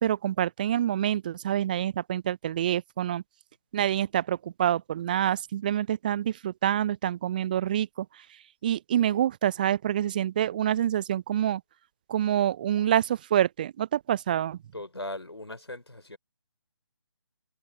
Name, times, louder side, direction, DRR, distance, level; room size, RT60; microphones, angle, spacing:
voice 1, 0.0-3.2 3.7-8.2 8.6-11.6 12.1-14.6, right 11 dB, 20° right, 0.5 m, -27 dB
voice 2, 14.7-16.2, left 1 dB, 80° left, 3.5 m, -38 dB
figure-of-eight pair, 150°, 13 cm